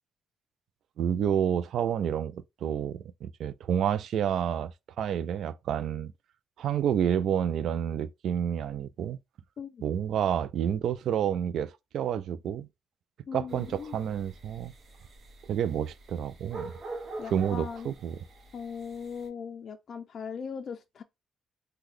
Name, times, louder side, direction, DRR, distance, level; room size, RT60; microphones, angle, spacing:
voice 1, 1.0-6.1 6.6-9.2 9.8-12.7 13.3-14.7 15.5-16.7 17.3-18.2, right 9 dB, 70° right, 0.3 m, -29 dB
voice 2, 9.6-9.9 13.3-14.0 17.2-17.9 18.5-21.0, left 6 dB, 55° left, 0.3 m, -39 dB
sound 1, 13.5-19.3, right 2 dB, 50° right, 0.9 m, -45 dB
3.7 x 2.2 x 3.1 m
cardioid pair, 90°, 0 cm